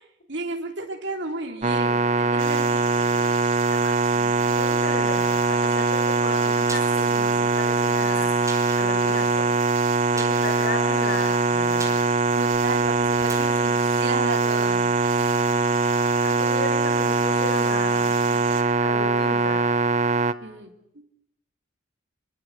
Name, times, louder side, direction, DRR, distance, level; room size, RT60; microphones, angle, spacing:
voice 1, 0.3-3.3 12.4-14.9 20.4-21.0, right 3 dB, 60° right, 2 dB, 3.4 m, -34 dB
sound 1, 1.6-20.3, right 3 dB, 35° right, 1.0 m, -22 dB
sound 2, 2.4-18.6, right 10 dB, 85° right, 4.3 m, -40 dB
voice 2, 3.7-8.4 8.8-9.5 10.1-12.0 16.2-19.6, left 2 dB, 55° left, 6 dB, 4.9 m, -35 dB
sound 3, 6.6-15.1 15.4-15.5, right 3 dB, 15° right, 4.9 m, -43 dB
28.0 x 23.5 x 8.1 m, 0.75 s
head